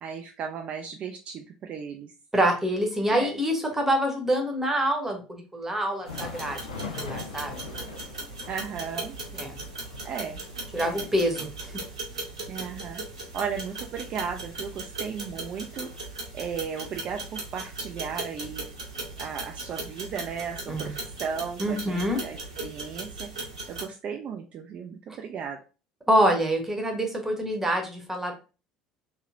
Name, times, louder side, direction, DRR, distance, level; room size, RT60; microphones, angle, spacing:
voice 1, 0.0-2.1 3.1-3.4 8.5-9.2 10.0-10.4 10.8-11.1 12.5-13.0 13.3-15.9 16.3-18.7 19.2-23.3 23.7-25.6, right 6 dB, 40° right, 4 dB, 0.3 m, -35 dB
voice 2, 2.3-7.6 9.3-9.6 10.7-11.8 20.7-20.9 21.6-22.2 26.1-28.3, equal, 10° right, 3 dB, 0.9 m, -26 dB
Thunder, 5.8-15.3 15.6-15.8 16.5-16.7 17.7-17.8, left 4 dB, 75° left, 0.5 m, -43 dB
sound 1, 6.1-23.8, right 3 dB, 75° right, 0.9 m, -38 dB
3.0 x 2.7 x 2.4 m, 0.33 s
figure-of-eight pair, 60°, 3 cm